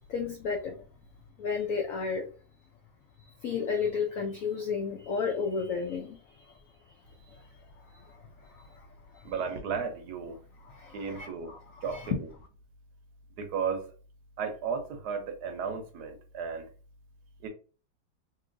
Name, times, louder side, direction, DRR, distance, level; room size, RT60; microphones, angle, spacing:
voice 1, 0.1-0.8 1.4-2.3 3.4-6.6 7.3-7.5 7.9-8.9 9.1-9.3 10.6-12.2, left 5 dB, 80° left, 3 dB, 0.7 m, -33 dB
voice 2, 9.2-10.4 10.9-11.5 11.8-12.3 13.4-13.9 14.4-16.6 17.4-17.5, right 6 dB, 70° right, 5 dB, 1.1 m, -34 dB
2.9 x 2.8 x 2.5 m, 0.37 s
omnidirectional pair, 2.0 m